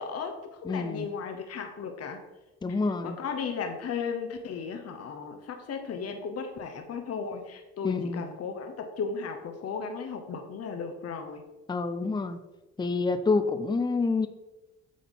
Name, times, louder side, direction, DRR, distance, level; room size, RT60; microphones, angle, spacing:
voice 1, 0.0-2.2 2.7-2.8 3.0-11.4, left 5 dB, 55° left, 6 dB, 0.9 m, -35 dB
voice 2, 0.7-1.0 2.6-3.2 7.8-8.2 11.7-12.4 12.8-14.3, left 3 dB, 15° left, 10 dB, 0.5 m, -27 dB
8.3 x 3.8 x 4.0 m, 1.0 s
cardioid pair, 90°, 30 cm